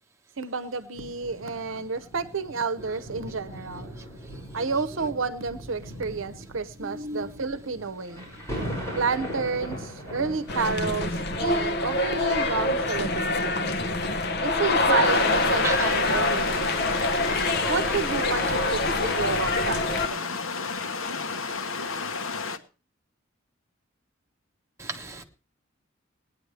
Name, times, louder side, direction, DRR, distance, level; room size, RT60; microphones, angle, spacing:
voice 1, 0.4-3.9 4.5-8.3 9.0-13.7 14.4-16.9 17.7-20.4, right 4 dB, 70° right, 0.8 m, -30 dB
sound 1, 0.9-13.7 14.4-14.5, equal, 15° left, 6.5 m, -40 dB
voice 2, 6.8-7.3 15.6-15.7 17.5-17.7 24.8-25.2, right 2 dB, 15° right, 1.4 m, -34 dB
sound 2, 10.5-20.1, left 2 dB, 55° left, 1.0 m, -25 dB
sound 3, 15.1-22.6, left 4 dB, 80° left, 1.1 m, -32 dB
19.5 x 9.8 x 3.3 m
head